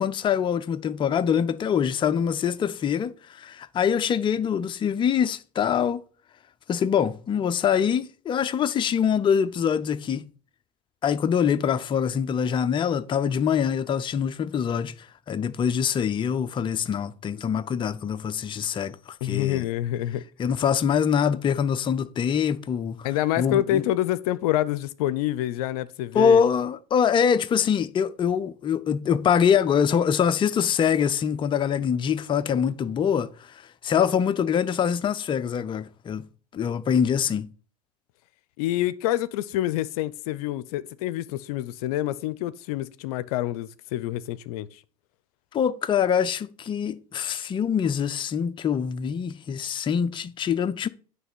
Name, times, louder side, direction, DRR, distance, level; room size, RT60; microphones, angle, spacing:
voice 1, 0.0-6.0 6.7-10.3 11.0-19.7 20.4-23.1 23.4-23.8 26.1-36.3 36.5-37.5 45.5-50.9, left 7 dB, 25° left, 0.5 m, -24 dB
voice 2, 19.2-20.2 23.0-26.4 38.6-44.8, left 14 dB, 70° left, 0.5 m, -27 dB
9.1 x 3.3 x 6.1 m
hypercardioid pair, 95°, 19 cm